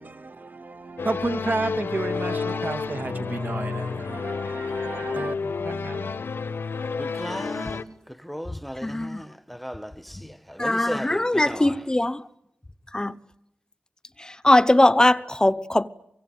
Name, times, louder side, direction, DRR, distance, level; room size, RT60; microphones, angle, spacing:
voice 1, 0.0-6.1, right 3 dB, 55° right, 1.9 m, -32 dB
sound 1, 1.0-7.8, left 5 dB, 85° left, 1.4 m, -30 dB
voice 2, 7.0-7.8 8.2-11.7, equal, ahead, 1.2 m, -36 dB
voice 3, 8.8-9.2 10.6-12.2 12.9-13.1 14.2-15.9, left 1 dB, 20° left, 1.0 m, -20 dB
24.5 x 24.0 x 9.3 m
wide cardioid pair, 75°, 4 cm